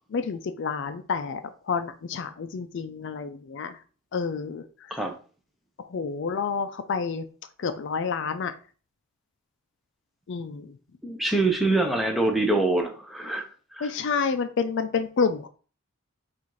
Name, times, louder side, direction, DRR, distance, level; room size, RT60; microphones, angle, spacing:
voice 1, 0.1-1.4 1.7-3.8 4.1-5.0 5.8-7.3 7.6-8.6 10.3-10.8 13.8-15.5, left 5 dB, 55° left, 9 dB, 0.4 m, -29 dB
voice 2, 11.0-13.5 13.7-13.9, right 2 dB, ahead, 2 dB, 0.6 m, -24 dB
4.0 x 2.5 x 4.6 m, 0.38 s
head